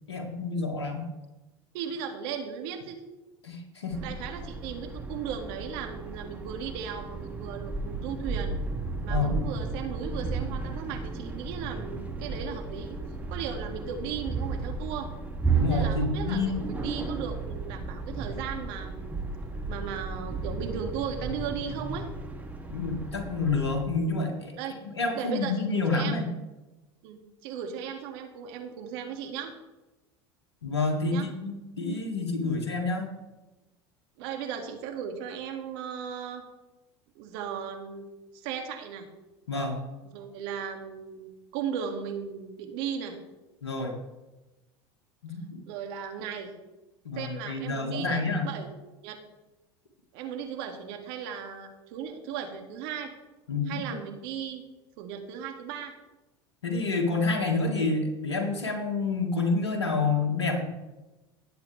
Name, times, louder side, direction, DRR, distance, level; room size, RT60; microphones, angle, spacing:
voice 1, 0.1-1.1 3.4-4.0 9.1-9.4 15.5-16.6 22.7-24.5 25.0-26.3 30.6-33.0 39.5-39.8 43.6-43.9 45.2-45.6 47.1-48.5 53.5-53.8 56.6-60.7, left 3 dB, 90° left, 2 dB, 1.9 m, -28 dB
voice 2, 1.7-3.0 4.0-8.5 9.0-13.0 13.3-15.1 15.6-19.2 19.7-22.1 24.6-24.7 25.1-26.2 27.0-29.5 31.1-31.3 34.2-36.4 37.2-38.1 38.3-39.1 40.0-43.2 45.7-46.5 47.2-48.7 49.0-49.2 50.1-53.1 53.7-54.6 55.0-55.9, right 7 dB, 65° right, 4 dB, 2.2 m, -36 dB
sound 1, 3.9-23.8, right 4 dB, 10° right, 2.4 m, -34 dB
18.5 x 8.3 x 3.3 m, 1.1 s
hypercardioid pair, 80°, 14 cm